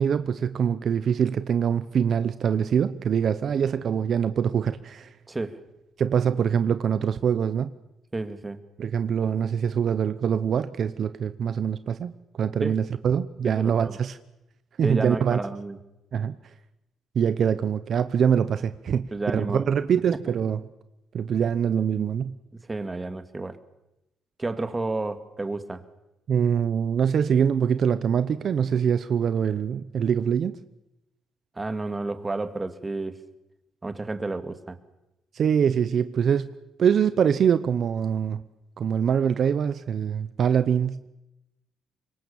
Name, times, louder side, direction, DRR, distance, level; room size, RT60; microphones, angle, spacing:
voice 1, 0.0-5.1 6.0-7.7 8.8-14.2 14.8-15.4 16.1-16.3 17.1-20.6 21.1-22.3 26.3-30.6 35.3-36.5 36.8-38.4 38.8-41.1, right 7 dB, 60° right, 13 dB, 0.9 m, -24 dB
voice 2, 5.3-5.6 8.1-8.6 12.6-12.8 13.4-14.0 14.8-15.8 18.9-19.7 20.2-20.3 22.7-23.6 24.4-25.8 31.6-33.2 33.8-34.8, right 2 dB, 20° right, 10 dB, 2.2 m, -31 dB
26.0 x 23.0 x 7.2 m, 0.91 s
cardioid pair, 90°, 0 cm